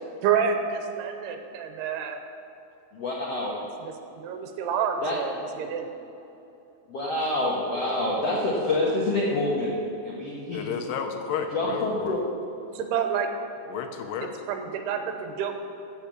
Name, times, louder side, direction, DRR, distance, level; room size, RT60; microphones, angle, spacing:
voice 1, 0.2-2.2 3.8-5.9 12.7-13.3 14.2-15.7, right 7 dB, 85° right, 6 dB, 2.8 m, -29 dB
voice 2, 2.9-3.5 5.0-5.2 6.9-10.7 11.5-12.2, left 2 dB, 65° left, -5 dB, 1.6 m, -27 dB
voice 3, 10.5-12.2 13.7-14.3, left 7 dB, 85° left, 5 dB, 2.9 m, -32 dB
15.0 x 5.5 x 7.5 m, 2.9 s
omnidirectional pair, 4.7 m